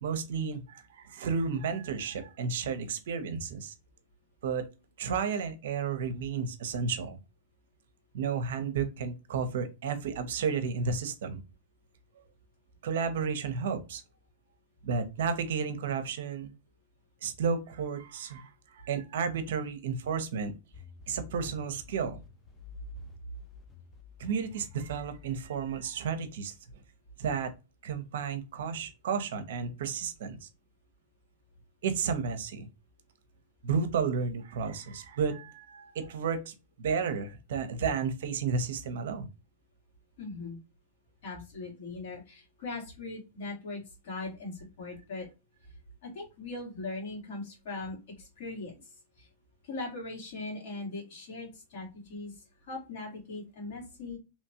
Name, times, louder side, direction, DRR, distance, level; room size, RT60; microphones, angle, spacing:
voice 1, 0.0-3.7 4.4-4.6 5.0-7.2 8.1-11.4 12.8-14.0 14.8-16.5 17.2-20.5 21.1-22.2 24.2-26.6 27.2-27.5 27.8-30.5 31.8-32.7 33.6-39.3, right 6 dB, 70° right, 9 dB, 0.5 m, -32 dB
sound 1, 20.7-26.6, left 7 dB, 15° left, 0.4 m, -52 dB
voice 2, 40.2-40.6 41.2-45.3 46.0-48.7 49.2-49.3 49.6-52.3 52.6-54.2, left 3 dB, 65° left, -2 dB, 1.7 m, -40 dB
2.9 x 2.2 x 2.6 m, 0.28 s
hypercardioid pair, 125°, 0 cm